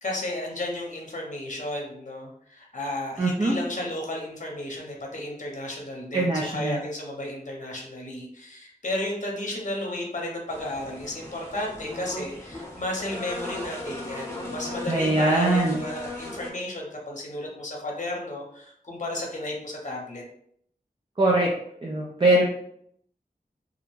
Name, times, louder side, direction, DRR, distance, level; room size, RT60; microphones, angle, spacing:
voice 1, 0.0-20.2, left 1 dB, 50° left, -1 dB, 0.7 m, -33 dB
voice 2, 3.2-3.6 6.1-6.8 14.9-15.8 21.2-21.5 21.8-22.4, right 2 dB, 30° right, -2 dB, 0.4 m, -22 dB
sound 1, 10.5-16.5, left 1 dB, 20° left, 0.7 m, -37 dB
2.4 x 2.1 x 3.0 m, 0.70 s
wide cardioid pair, 60°, 16 cm